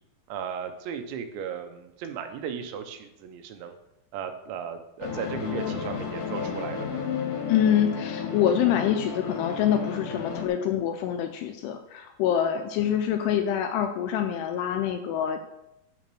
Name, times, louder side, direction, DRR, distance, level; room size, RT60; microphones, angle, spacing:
voice 1, 0.3-3.7 4.1-7.0, right 7 dB, 85° right, 7 dB, 3.1 m, -36 dB
sound 1, 5.0-10.5, left 6 dB, 65° left, 2.2 m, -32 dB
voice 2, 7.5-15.4, left 9 dB, 80° left, 6 dB, 2.5 m, -25 dB
11.5 x 4.1 x 6.1 m, 0.89 s
omnidirectional pair, 5.1 m